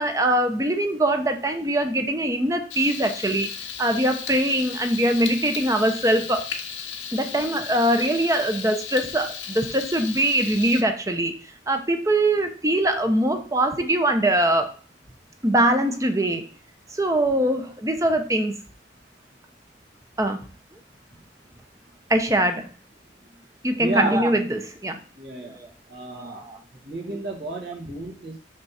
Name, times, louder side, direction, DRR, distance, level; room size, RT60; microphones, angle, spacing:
voice 1, 0.0-3.5 3.8-6.5 7.1-11.3 11.7-14.8 15.4-16.4 16.9-18.6 20.2-20.4 22.1-22.7 23.6-25.0 25.4-25.7 26.1-26.6, right 1 dB, 15° right, 6 dB, 0.9 m, -22 dB
Frying (food), 2.7-10.8, left 7 dB, 85° left, 1.2 m, -35 dB
voice 2, 23.8-24.2 25.2-25.6 25.9-26.5 26.9-28.4, right 2 dB, 65° right, 0 dB, 2.2 m, -31 dB
6.2 x 6.0 x 4.2 m, 0.39 s
head